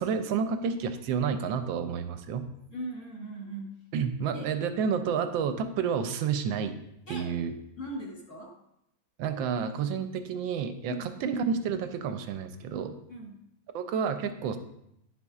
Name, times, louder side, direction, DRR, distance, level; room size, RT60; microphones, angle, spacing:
voice 1, 0.0-2.5 3.9-6.7 7.1-7.5 9.2-13.0 13.7-14.6, right 6 dB, 80° right, 8 dB, 1.3 m, -30 dB
voice 2, 2.7-3.8 4.3-4.5 7.1-7.3 7.8-8.5 10.9-11.2 13.1-13.4, right 1 dB, 40° left, -3 dB, 1.6 m, -39 dB
10.0 x 6.8 x 2.4 m, 0.79 s
omnidirectional pair, 2.1 m